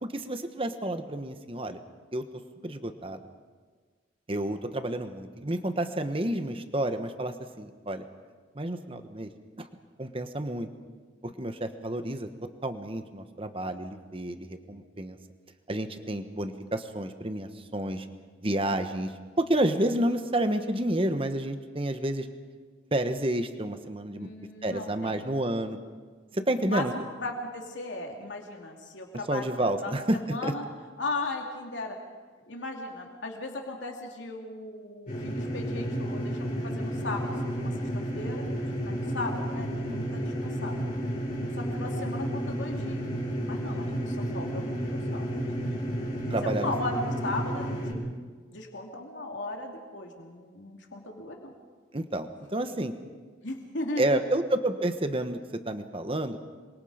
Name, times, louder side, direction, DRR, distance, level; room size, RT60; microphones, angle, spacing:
voice 1, 0.0-1.8 2.1-2.3 2.6-3.2 4.3-8.0 8.5-9.3 9.6-9.7 10.0-10.7 11.2-12.3 12.6-15.2 15.7-18.1 18.4-22.3 22.9-24.3 24.6-25.8 26.3-26.9 29.3-30.5 39.8-40.0 46.3-46.7 51.9-52.9 54.0-56.5, right 1 dB, 30° right, 8 dB, 1.3 m, -30 dB
voice 2, 24.1-25.3 26.6-30.6 31.0-32.0 32.5-36.4 36.6-37.9 38.1-40.8 41.5-43.1 43.4-48.0 48.5-51.5 53.4-54.2, left 2 dB, 85° left, 1 dB, 3.0 m, -37 dB
sound 1, 35.1-47.9, equal, 45° left, 6.2 m, -32 dB
26.5 x 23.0 x 5.1 m, 1.5 s
head